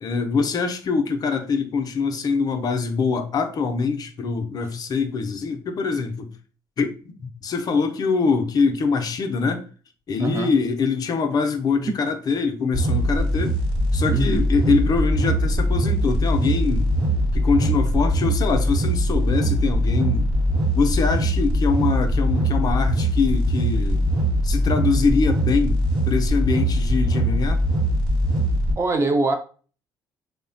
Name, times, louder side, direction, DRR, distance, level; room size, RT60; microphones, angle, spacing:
voice 1, 0.0-6.3 6.8-6.9 7.4-9.6 10.1-13.6 13.9-16.9 17.3-20.3 20.7-24.1 24.4-27.6, left 5 dB, 45° left, 0.4 m, -23 dB
voice 2, 10.2-10.5 14.1-14.5 28.8-29.4, right 2 dB, 30° right, 0.5 m, -23 dB
sound 1, 12.7-28.7, equal, 60° right, 1.0 m, -21 dB
3.1 x 2.0 x 2.5 m
cardioid pair, 95°, 9 cm